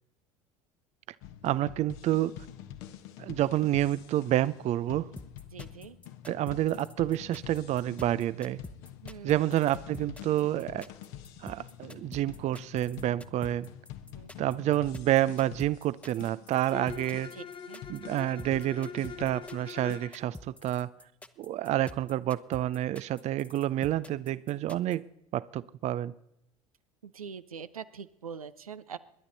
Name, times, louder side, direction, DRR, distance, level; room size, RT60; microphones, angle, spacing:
sound 1, 1.2-20.0, left 11 dB, 60° left, 1.2 m, -47 dB
voice 1, 1.4-2.4 3.2-5.1 6.3-8.6 9.2-10.9 11.4-13.7 14.4-17.3 17.9-20.9 21.4-25.1 25.3-26.1, right 13 dB, 40° right, 0.6 m, -29 dB
sound 2, 5.2-25.0, left 2 dB, 5° left, 1.0 m, -47 dB
voice 2, 5.5-6.0 9.0-9.3 14.1-14.3 17.3-17.8 27.0-29.0, right 7 dB, 85° right, 0.7 m, -43 dB
Bowed string instrument, 16.7-20.3, left 7 dB, 30° left, 1.2 m, -43 dB
28.0 x 11.0 x 4.0 m
figure-of-eight pair, 70°, 18 cm